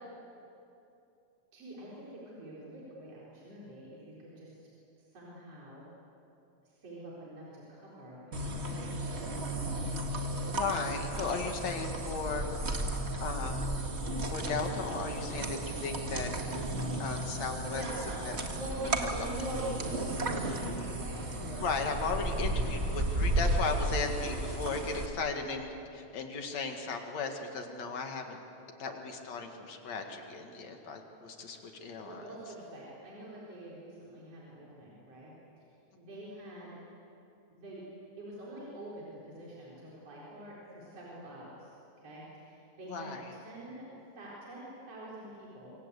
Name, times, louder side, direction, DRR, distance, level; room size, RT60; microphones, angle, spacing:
voice 1, 1.5-4.6 5.0-5.9 6.8-9.6 17.6-19.7 20.0-21.9 31.7-35.3 36.0-36.8 37.5-37.8 38.2-41.7 42.0-43.8 44.2-45.7, right 1 dB, 55° right, -6 dB, 5.3 m, -45 dB
sound 1, 8.3-25.1, right 1 dB, 25° right, 1.6 m, -34 dB
voice 2, 10.5-12.8 13.2-13.7 14.3-16.3 17.0-17.8 18.2-18.3 19.0-19.3 21.4-28.4 28.8-32.2 42.9-43.3, left 4 dB, 65° left, 4 dB, 3.2 m, -36 dB
26.5 x 24.0 x 8.3 m, 2.8 s
omnidirectional pair, 3.4 m